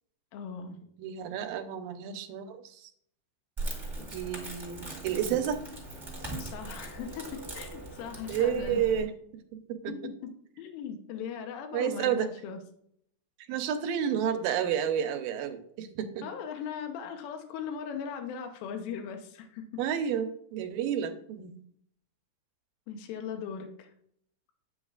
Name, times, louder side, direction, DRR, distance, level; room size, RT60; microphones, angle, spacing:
voice 1, 0.3-0.8 6.4-8.8 9.9-10.3 10.6-12.6 16.2-19.8 22.9-23.9, left 7 dB, 80° left, 6 dB, 2.6 m, -39 dB
voice 2, 1.0-2.9 4.0-5.6 8.3-9.1 9.5-9.9 11.7-12.3 13.5-16.3 19.8-21.6, right 9 dB, 80° right, 8 dB, 2.4 m, -31 dB
Crackle, 3.6-9.0, right 2 dB, 10° right, 1.2 m, -40 dB
8.8 x 7.9 x 2.4 m, 0.68 s
omnidirectional pair, 4.1 m